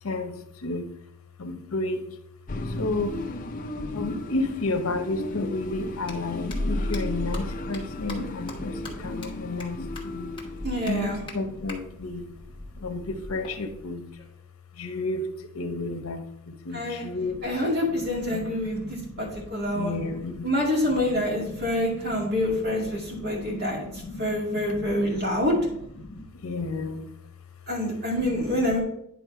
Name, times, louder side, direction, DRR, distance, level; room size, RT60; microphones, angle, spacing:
voice 1, 0.0-0.9 1.4-2.1 2.6-3.2 3.9-10.3 10.9-12.3 12.8-14.1 14.7-17.6 18.0-20.5 20.9-25.4 26.0-27.1 28.2-28.8, left 2 dB, 85° left, 7 dB, 0.9 m, -33 dB
sound 1, 2.5-11.7, left 2 dB, 40° left, 0.6 m, -36 dB
Thunder, 5.5-13.9, left 1 dB, 20° right, 1.7 m, -37 dB
sound 2, 6.0-6.1 6.5-6.6 6.9-7.0 7.3-7.4 7.7-7.8 8.1-8.2 8.5-8.6 8.8-8.9 9.2-9.3 9.6-9.7 9.9-10.0 10.4-10.5 10.9-11.0 11.3-11.4 11.7-11.8 13.4-14.4, left 3 dB, 20° left, 1.1 m, -41 dB
voice 2, 10.6-11.2 16.7-17.0 17.4-19.9 20.4-25.6 27.7-28.8, left 1 dB, 50° right, -2 dB, 2.3 m, -27 dB
9.9 x 3.8 x 4.8 m, 0.77 s
head